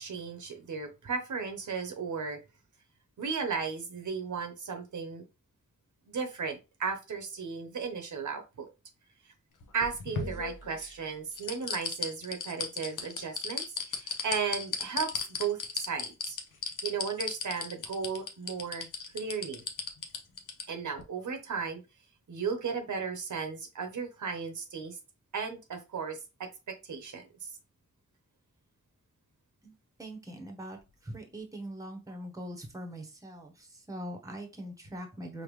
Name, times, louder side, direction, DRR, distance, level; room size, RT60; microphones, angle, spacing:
voice 1, 0.0-2.4 3.2-5.2 6.1-8.7 9.7-16.4 16.8-18.9 19.1-19.6 20.7-21.8 22.3-25.0 25.3-27.3, right 5 dB, 75° right, 0.8 m, -35 dB
sound 1, 9.6-10.9 11.4-20.6 21.0-21.1, left 5 dB, 85° left, 0.8 m, -35 dB
voice 2, 30.0-30.8 31.0-35.4, right 1 dB, 10° right, 0.8 m, -42 dB
5.1 x 2.2 x 3.1 m
wide cardioid pair, 155°, 30 cm